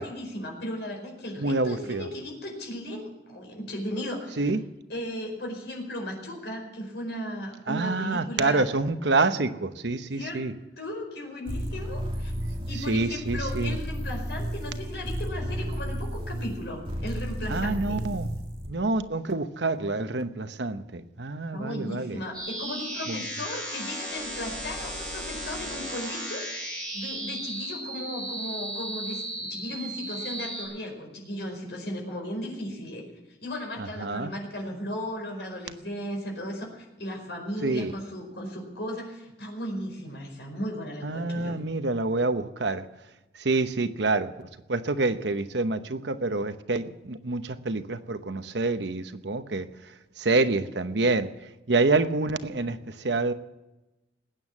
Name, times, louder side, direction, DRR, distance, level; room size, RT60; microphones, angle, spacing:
voice 1, 0.0-4.4 4.9-8.6 10.1-10.4 10.8-12.3 12.7-18.0 21.5-26.4 26.9-33.0 33.4-41.6, left 1 dB, 70° left, 1 dB, 4.8 m, -36 dB
voice 2, 1.4-2.1 4.4-4.6 7.7-10.5 12.6-13.8 17.5-18.3 18.7-22.2 23.1-23.2 33.8-34.3 37.6-37.9 41.0-42.8 43.4-49.7 50.2-51.3 51.7-53.3, right 3 dB, 75° right, 10 dB, 0.9 m, -27 dB
sound 1, 11.5-18.7, equal, 30° right, 2.2 m, -33 dB
sound 2, 22.3-30.6, right 1 dB, 5° left, 7.5 m, -35 dB
20.0 x 9.2 x 7.3 m, 1.0 s
head